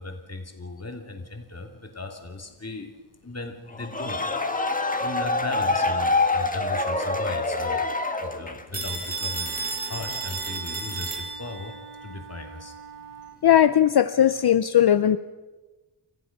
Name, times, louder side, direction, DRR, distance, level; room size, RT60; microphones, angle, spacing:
voice 1, 0.0-2.9 3.2-4.2 5.0-7.8 8.2-12.7, left 3 dB, 35° left, 3 dB, 2.8 m, -37 dB
sound 1, 3.7-8.8, left 3 dB, 15° left, 1.7 m, -26 dB
Telephone, 8.7-11.7, right 4 dB, 20° right, 4.1 m, -32 dB
Wind instrument woodwind instrument, 9.0-13.4, right 7 dB, 55° right, 2.8 m, -44 dB
voice 2, 13.4-15.2, left 10 dB, 55° left, 12 dB, 0.6 m, -18 dB
30.0 x 14.5 x 6.0 m, 1.2 s
wide cardioid pair, 105°, 46 cm